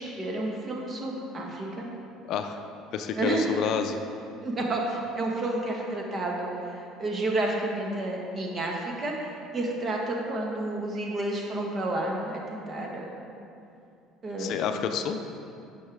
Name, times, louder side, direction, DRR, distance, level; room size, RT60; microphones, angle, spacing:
voice 1, 0.0-1.9 3.1-3.6 4.4-6.5 7.0-13.2 14.2-14.7, right 2 dB, 35° right, 0 dB, 1.4 m, -30 dB
voice 2, 2.2-2.6 2.9-4.0 14.4-15.2, left 7 dB, 65° left, 7 dB, 0.4 m, -29 dB
9.5 x 5.6 x 3.4 m, 2.6 s
supercardioid pair, 95°, 0 cm